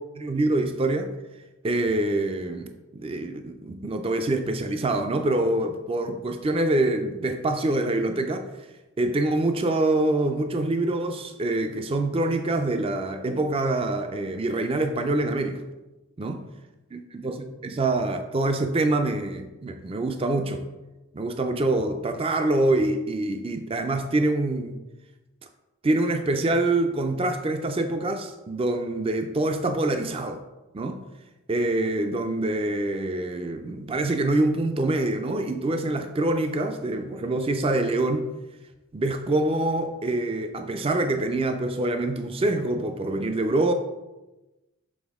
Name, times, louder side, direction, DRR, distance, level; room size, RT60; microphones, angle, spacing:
voice 1, 0.2-1.1 1.6-8.5 9.0-15.6 16.2-16.4 16.9-20.6 21.1-24.8 25.8-30.4 30.7-31.0 31.5-38.3 38.9-43.7, right 2 dB, 25° right, 7 dB, 0.4 m, -25 dB
7.2 x 4.2 x 3.5 m, 1.1 s
head